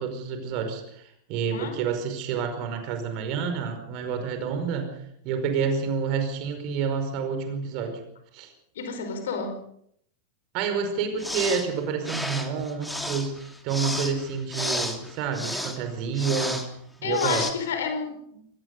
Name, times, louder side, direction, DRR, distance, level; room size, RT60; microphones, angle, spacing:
voice 1, 0.0-4.9 5.2-8.0 8.3-8.5 10.5-16.7 17.0-17.5, right 6 dB, 40° right, 7 dB, 5.0 m, -29 dB
voice 2, 8.8-9.6 17.0-18.4, left 6 dB, 60° left, 7 dB, 5.1 m, -30 dB
sound 1, 11.2-11.7 12.0-15.8 16.1-16.7 17.1-17.5, left 1 dB, 5° left, 2.9 m, -32 dB
24.5 x 19.5 x 5.5 m, 0.70 s
figure-of-eight pair, 90°, 0 cm